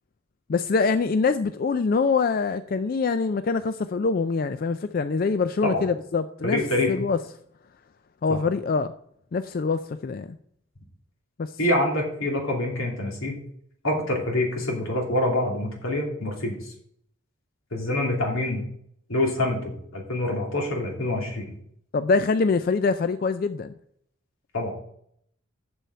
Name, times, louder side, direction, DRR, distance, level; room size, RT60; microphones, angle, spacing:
voice 1, 0.5-6.6 6.9-7.2 8.2-8.9 9.3-10.3 11.4-11.5 21.9-23.7, left 4 dB, 45° left, 11 dB, 0.3 m, -24 dB
voice 2, 6.4-6.9 8.3-8.4 11.6-13.4 13.8-16.7 17.7-18.6 19.1-21.5 24.5-24.7, left 1 dB, 85° left, 0 dB, 2.8 m, -26 dB
7.3 x 7.1 x 5.5 m, 0.67 s
head